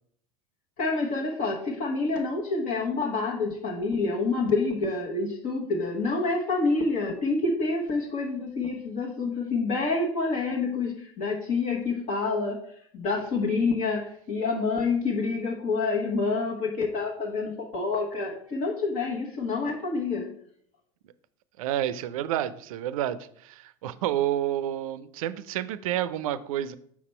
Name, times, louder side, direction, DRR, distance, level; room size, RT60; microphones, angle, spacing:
voice 1, 0.8-20.3, left 3 dB, 45° left, -1 dB, 1.2 m, -28 dB
voice 2, 21.6-26.8, right 12 dB, 70° right, 15 dB, 0.5 m, -29 dB
5.8 x 4.2 x 4.3 m, 0.66 s
hypercardioid pair, 85°, 18 cm